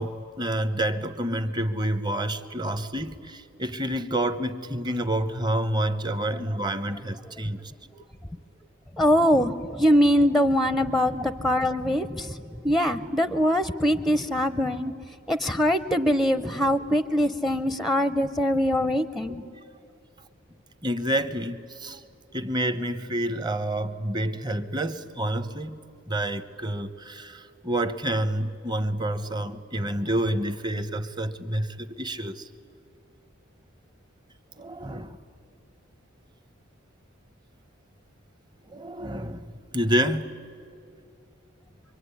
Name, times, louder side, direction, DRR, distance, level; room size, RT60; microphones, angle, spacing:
voice 1, 0.0-7.6 20.8-22.0 22.3-32.4 34.6-35.2 38.7-40.4, right 1 dB, 20° right, 0.9 m, -28 dB
voice 2, 9.0-14.9 15.3-19.4, equal, ahead, 0.6 m, -23 dB
26.0 x 23.5 x 9.7 m
head